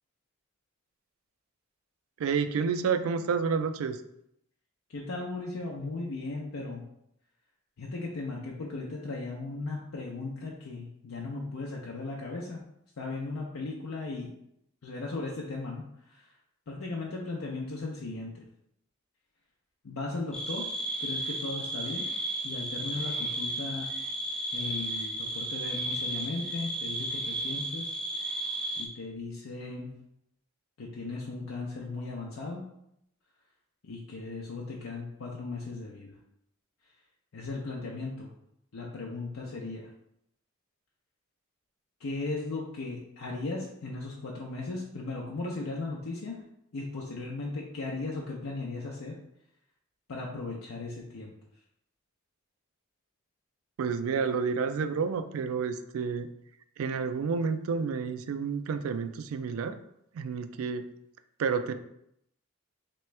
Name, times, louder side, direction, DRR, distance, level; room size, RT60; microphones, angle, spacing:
voice 1, 2.2-4.0 53.8-56.3 56.8-59.8 60.1-60.9 61.4-61.7, right 5 dB, 85° right, 10 dB, 0.3 m, -30 dB
voice 2, 4.9-6.9 7.8-12.6 13.0-14.3 14.8-16.3 16.7-18.4 19.8-20.7 21.0-22.1 22.4-23.9 24.5-27.9 28.8-30.0 30.8-32.7 33.8-36.1 37.3-38.3 38.7-39.9 42.0-46.4 46.7-49.2 50.1-51.3, left 3 dB, 85° left, -3 dB, 0.6 m, -37 dB
sound 1, 20.3-28.9, right 1 dB, 5° left, 0.4 m, -34 dB
3.4 x 3.0 x 3.2 m, 0.76 s
head